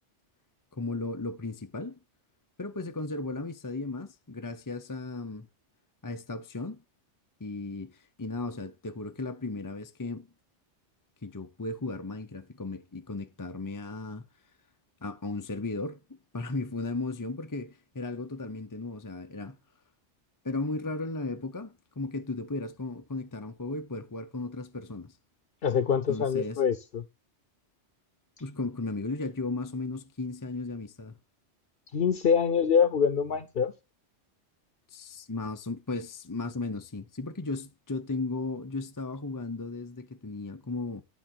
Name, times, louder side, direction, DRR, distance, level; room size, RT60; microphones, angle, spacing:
voice 1, 0.7-2.0 2.6-5.5 6.0-6.8 7.4-10.3 11.2-14.3 15.0-16.0 16.3-19.6 20.4-25.2 26.1-26.6 28.4-31.1 34.9-41.0, left 3 dB, 25° left, 0.5 m, -35 dB
voice 2, 25.6-27.0 31.9-33.7, left 7 dB, 55° left, 0.9 m, -25 dB
11.5 x 4.0 x 7.6 m
omnidirectional pair, 1.2 m